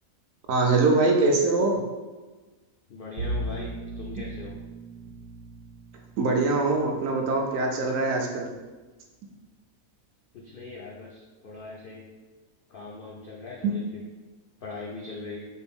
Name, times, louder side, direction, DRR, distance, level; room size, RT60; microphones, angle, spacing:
voice 1, 0.5-1.8 6.2-8.5 13.6-13.7, right 3 dB, 70° right, 2 dB, 0.9 m, -23 dB
voice 2, 2.9-4.5 10.3-12.1 12.7-13.8 14.6-15.5, left 3 dB, 80° left, -3 dB, 0.4 m, -40 dB
Bowed string instrument, 3.2-8.3, right 1 dB, 90° right, 1.1 m, -38 dB
4.6 x 2.5 x 3.4 m, 1.2 s
omnidirectional pair, 1.6 m